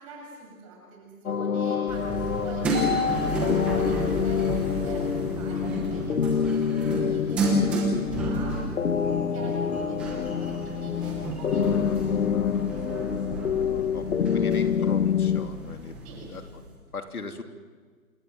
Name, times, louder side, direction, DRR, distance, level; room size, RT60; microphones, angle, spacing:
voice 1, 0.0-12.3 12.6-13.5 13.8-14.0 16.0-16.3, right 3 dB, 25° right, 0 dB, 7.2 m, -46 dB
sound 1, 1.3-15.5, left 7 dB, 70° left, 1.4 m, -27 dB
sound 2, 1.9-16.7, right 1 dB, 5° right, 0.9 m, -32 dB
voice 2, 14.3-16.0 16.2-16.4 16.9-17.4, left 4 dB, 85° left, 5 dB, 3.3 m, -38 dB
27.5 x 19.0 x 7.9 m, 1.5 s
hypercardioid pair, 170°, 43 cm